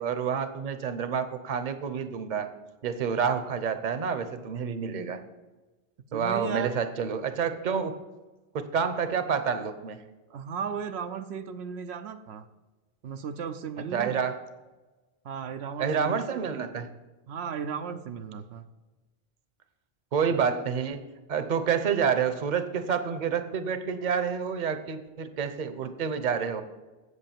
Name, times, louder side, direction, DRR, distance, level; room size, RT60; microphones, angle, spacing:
voice 1, 0.0-2.5 2.8-5.2 6.1-8.0 8.5-10.0 13.9-14.3 15.8-16.9 20.1-26.6, right 6 dB, 50° right, 10 dB, 0.8 m, -28 dB
voice 2, 6.1-6.8 10.3-12.5 13.0-14.2 15.2-16.4 17.3-18.7, right 6 dB, 90° right, 8 dB, 0.9 m, -35 dB
8.3 x 7.6 x 7.3 m, 1.2 s
omnidirectional pair, 1.0 m